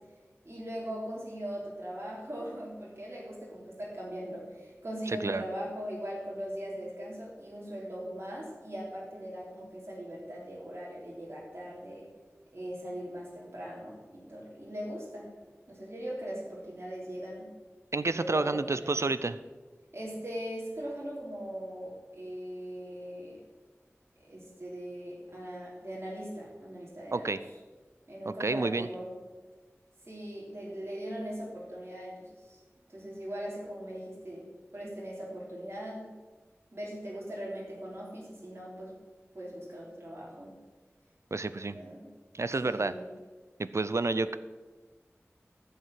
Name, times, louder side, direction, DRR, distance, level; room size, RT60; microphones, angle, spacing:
voice 1, 0.4-12.1 12.5-15.3 15.7-17.5 18.1-19.0 19.9-23.4 24.2-27.3 28.1-29.1 30.0-32.6 32.9-34.5 34.7-36.1 36.7-39.0 39.3-40.5 41.5-42.1 42.6-43.1, equal, 55° right, -6 dB, 3.4 m, -40 dB
voice 2, 5.1-5.4 17.9-19.4 27.1-27.4 28.3-28.9 41.3-41.8 42.3-42.9 43.6-44.4, right 3 dB, 70° right, 13 dB, 0.5 m, -30 dB
14.0 x 5.6 x 7.6 m, 1.3 s
wide cardioid pair, 45°, 5 cm